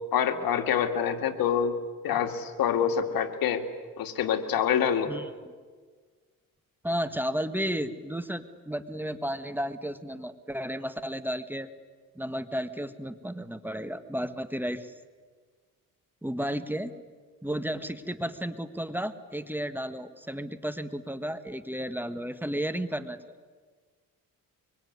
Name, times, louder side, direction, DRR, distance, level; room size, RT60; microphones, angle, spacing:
voice 1, 0.1-1.8 2.0-3.6 4.0-5.1, left 8 dB, 80° left, 6 dB, 2.3 m, -26 dB
voice 2, 6.8-11.7 12.1-14.9 16.2-16.9 17.4-23.2, equal, 5° right, 11 dB, 1.5 m, -33 dB
25.0 x 24.5 x 9.6 m, 1.5 s
cardioid pair, 90°, 35 cm